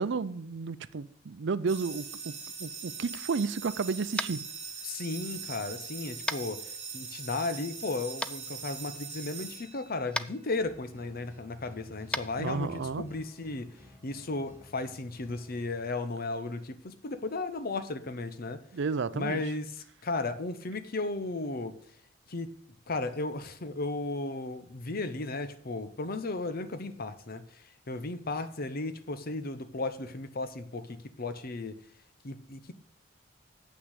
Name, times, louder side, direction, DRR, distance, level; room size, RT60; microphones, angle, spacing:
voice 1, 0.0-2.3 2.6-4.4 12.4-13.0 18.7-19.4, right 4 dB, 65° right, 16 dB, 0.5 m, -32 dB
sound 1, 1.7-10.3, right 5 dB, 35° right, 1.9 m, -42 dB
Tap, 4.1-4.4 6.3-6.4 8.2-8.3 10.1-10.3 12.1-12.2, left 1 dB, 5° left, 0.3 m, -32 dB
voice 2, 4.8-6.7 6.9-13.7 14.0-18.6 19.1-21.8 22.3-22.5 22.9-27.4 27.9-31.8 32.2-32.7, left 3 dB, 50° left, 11 dB, 0.8 m, -35 dB
sound 2, 10.4-15.8, left 1 dB, 15° right, 1.6 m, -54 dB
8.2 x 6.1 x 8.1 m, 0.62 s
head